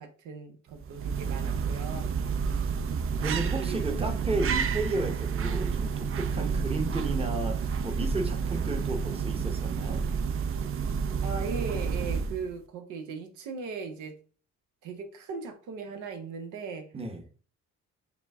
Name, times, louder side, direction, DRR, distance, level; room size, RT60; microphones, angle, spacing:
voice 1, 0.0-2.2 3.6-4.1 6.4-6.6 11.2-14.1 14.8-16.9, right 4 dB, 85° right, 0.8 m, -38 dB
sound 1, 0.7-12.6, right 6 dB, 45° right, 0.5 m, -30 dB
voice 2, 3.2-10.0 16.9-17.2, right 2 dB, 20° right, 0.8 m, -33 dB
5.0 x 2.1 x 3.4 m
cardioid pair, 90°, 30 cm